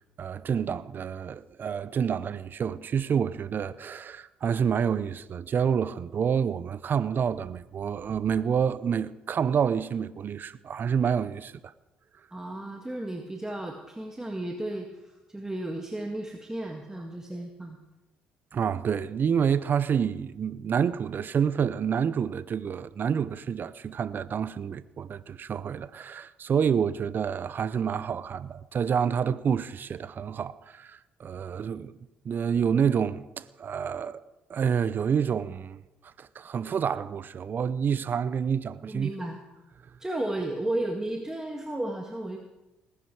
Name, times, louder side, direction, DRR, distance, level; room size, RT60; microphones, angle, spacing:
voice 1, 0.2-11.5 18.5-32.0 32.2-34.2 34.5-39.1, right 7 dB, 50° right, 0.7 m, -28 dB
voice 2, 12.3-17.8 38.9-39.4 40.0-42.4, right 1 dB, 10° right, 1.8 m, -34 dB
19.5 x 10.5 x 4.9 m
hypercardioid pair, 50°, 4 cm